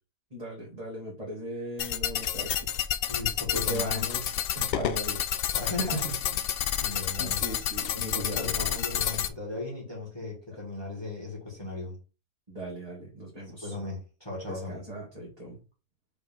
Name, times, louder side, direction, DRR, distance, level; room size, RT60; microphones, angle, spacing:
voice 1, 0.3-2.5 3.7-5.2 5.6-6.2 7.2-9.2 12.5-13.7 14.5-15.6, right 1 dB, 30° right, 1.7 m, -38 dB
sound 1, 1.8-9.3, left 10 dB, 65° left, 0.6 m, -30 dB
voice 2, 3.1-4.1 5.5-6.4 6.7-7.4 7.9-12.0 13.5-14.8, left 3 dB, 20° left, 2.2 m, -37 dB
5.5 x 3.5 x 5.2 m
omnidirectional pair, 1.4 m